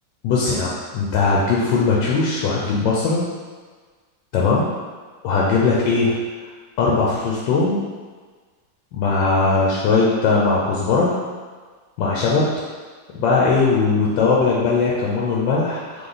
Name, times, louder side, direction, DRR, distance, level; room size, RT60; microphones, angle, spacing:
voice 1, 0.2-3.2 4.3-4.7 5.2-6.1 6.8-7.8 8.9-11.1 12.0-12.4 13.1-16.1, left 4 dB, 80° left, -4 dB, 1.4 m, -19 dB
3.9 x 3.1 x 3.9 m, 1.5 s
omnidirectional pair, 2.0 m